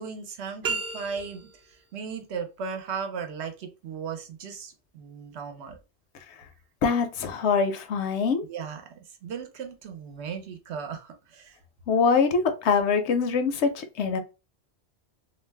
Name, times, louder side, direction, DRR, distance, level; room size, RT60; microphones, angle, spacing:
voice 1, 0.0-1.5 1.9-5.8 8.5-8.9 9.2-11.6, right 6 dB, 80° right, 0.9 m, -36 dB
sound 1, 0.6-1.7, right 4 dB, 60° right, 0.7 m, -32 dB
voice 2, 6.8-8.4 11.9-14.2, left 5 dB, 85° left, 0.9 m, -24 dB
2.5 x 2.1 x 3.2 m
omnidirectional pair, 1.1 m